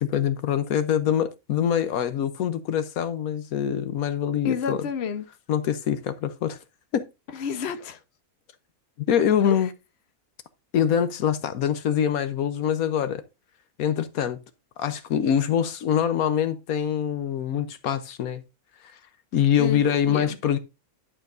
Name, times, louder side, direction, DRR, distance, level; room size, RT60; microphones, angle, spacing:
voice 1, 0.0-4.8 5.5-6.6 6.9-7.1 9.1-9.7 10.7-13.2 13.8-14.4 14.8-18.4 19.3-20.6, left 9 dB, 80° left, 1.2 m, -24 dB
voice 2, 4.4-5.2 7.3-8.0 9.5-9.6 19.6-19.8 20.1-20.4, left 7 dB, 50° left, 1.1 m, -29 dB
11.0 x 7.4 x 2.6 m
omnidirectional pair, 1.5 m